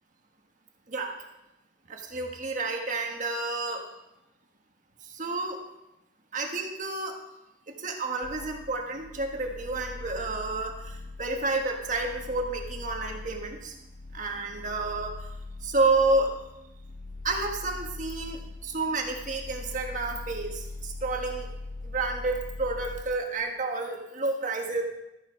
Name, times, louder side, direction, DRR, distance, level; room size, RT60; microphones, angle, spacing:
voice 1, 1.9-3.8 5.0-5.6 6.3-7.2 7.7-13.7 14.1-15.3 15.6-16.3 17.2-21.5 21.8-24.8, right 3 dB, 45° right, 2 dB, 1.5 m, -30 dB
sound 1, 8.2-23.0, left 2 dB, 75° left, 1.3 m, -41 dB
13.0 x 7.3 x 5.2 m, 0.93 s
head